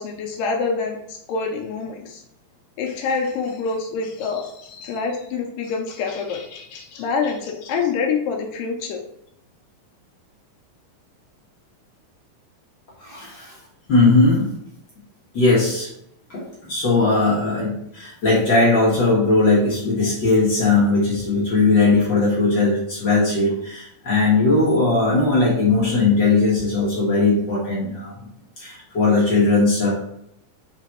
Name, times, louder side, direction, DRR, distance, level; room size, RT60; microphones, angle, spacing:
voice 1, 0.0-2.2 2.8-9.0, left 5 dB, 80° left, 2 dB, 2.2 m, -26 dB
voice 2, 13.0-13.5 13.9-14.5 15.3-15.9 16.3-28.1 28.6-29.9, left 3 dB, 65° left, -6 dB, 1.1 m, -18 dB
5.9 x 3.6 x 4.4 m, 0.76 s
omnidirectional pair, 4.3 m